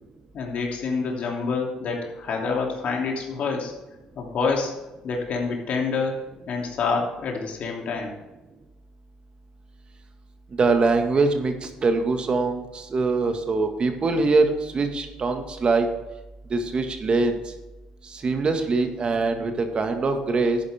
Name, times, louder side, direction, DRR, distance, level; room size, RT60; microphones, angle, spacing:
voice 1, 0.3-3.7 4.1-4.7 5.0-6.2 6.5-8.1, left 4 dB, 60° left, 0 dB, 2.9 m, -27 dB
voice 2, 10.6-15.9 16.5-17.4 18.0-20.6, right 3 dB, 40° right, 5 dB, 1.7 m, -23 dB
11.5 x 9.6 x 3.6 m, 1.1 s
supercardioid pair, 75°, 3 cm